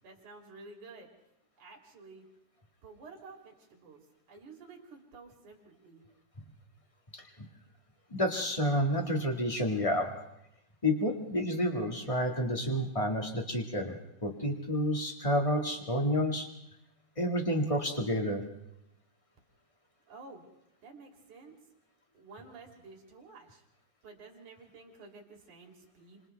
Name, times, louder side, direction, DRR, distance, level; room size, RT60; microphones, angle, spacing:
voice 1, 0.0-1.1 1.6-2.3 2.8-4.0 4.3-6.0 20.1-20.4 20.8-21.6 22.1-23.6 24.0-26.2, right 3 dB, 55° right, 0 dB, 4.4 m, -51 dB
voice 2, 8.1-10.1 10.8-16.5 17.2-18.4, equal, 30° left, 2 dB, 0.6 m, -30 dB
29.0 x 26.5 x 3.4 m, 0.82 s
omnidirectional pair, 4.2 m